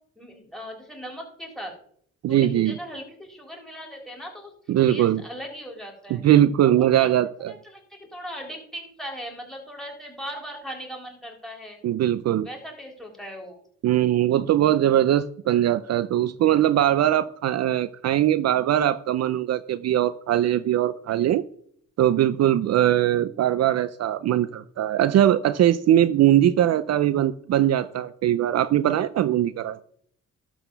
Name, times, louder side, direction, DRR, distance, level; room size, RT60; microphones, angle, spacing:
voice 1, 0.2-1.7 2.3-4.5 4.9-6.2 6.7-7.1 7.5-11.8 12.4-13.6, equal, ahead, 2 dB, 3.7 m, -38 dB
voice 2, 2.2-2.8 4.7-5.2 6.1-7.5 11.8-12.5 13.8-21.4 22.0-29.8, right 12 dB, 60° right, 14 dB, 0.5 m, -21 dB
12.5 x 4.2 x 6.8 m, 0.63 s
cardioid pair, 90°, 30 cm